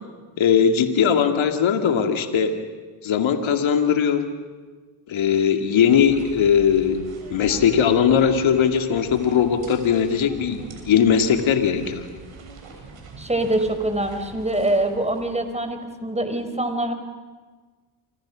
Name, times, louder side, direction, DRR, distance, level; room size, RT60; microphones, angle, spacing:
voice 1, 0.4-2.6 3.0-4.3 5.1-7.0 7.3-12.1, left 7 dB, 65° left, 7 dB, 2.5 m, -19 dB
sound 1, 5.9-15.8, right 4 dB, 70° right, 6.8 m, -42 dB
voice 2, 13.2-16.9, right 1 dB, 15° right, 7 dB, 5.0 m, -24 dB
29.5 x 25.5 x 6.3 m, 1.4 s
hypercardioid pair, 40°, 49 cm